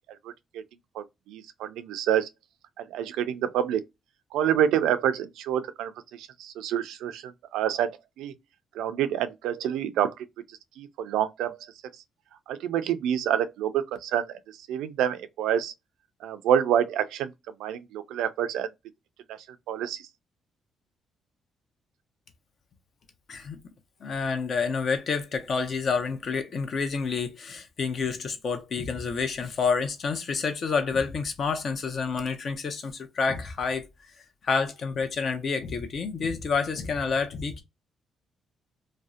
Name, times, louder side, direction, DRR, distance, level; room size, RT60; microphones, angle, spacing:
voice 1, 0.2-0.6 1.0-2.3 2.8-3.8 4.3-8.3 8.8-10.1 10.8-11.6 12.5-14.4 14.7-15.7 16.2-17.3 17.6-18.7 19.3-19.4 19.7-20.0, right 10 dB, 90° right, 0.3 m, -27 dB
voice 2, 24.0-33.8 34.4-37.6, left 5 dB, 55° left, 0.6 m, -28 dB
2.6 x 2.0 x 2.3 m
cardioid pair, 90°, 0 cm